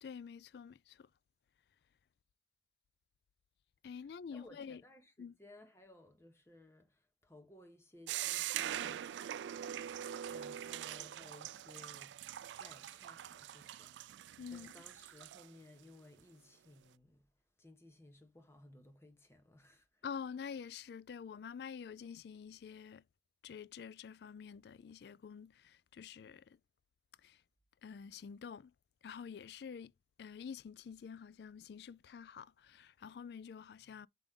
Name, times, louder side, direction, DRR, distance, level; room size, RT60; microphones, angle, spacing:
voice 1, 0.0-1.1 3.8-4.8 5.2-5.3 14.4-14.7 20.0-23.0 23.4-26.6 27.2-27.4 27.8-28.7 29.0-29.9 30.2-34.1, left 6 dB, 60° left, 0.3 m, -48 dB
voice 2, 4.3-9.1 10.3-12.3 12.6-14.2 14.5-17.3 17.6-20.0, left 1 dB, 15° left, 1.1 m, -59 dB
sound 1, 8.1-15.5, right 11 dB, 75° right, 0.3 m, -43 dB
6.1 x 5.2 x 3.6 m
head